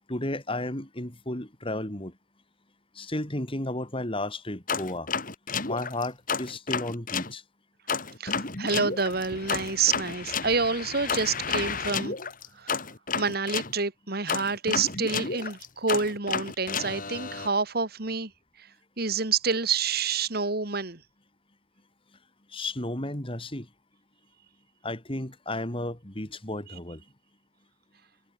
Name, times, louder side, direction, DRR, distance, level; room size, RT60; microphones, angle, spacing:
voice 1, 0.1-2.1 3.0-5.1 5.7-7.4 22.5-23.7 24.8-27.0, left 1 dB, 30° left, 4.2 m, -33 dB
sound 1, 4.7-7.3 7.9-13.7 14.3-17.5, left 5 dB, 50° left, 3.5 m, -31 dB
voice 2, 8.2-12.1 12.6-12.8 13.2-18.3 19.0-21.0, right 4 dB, 60° right, 2.7 m, -28 dB
head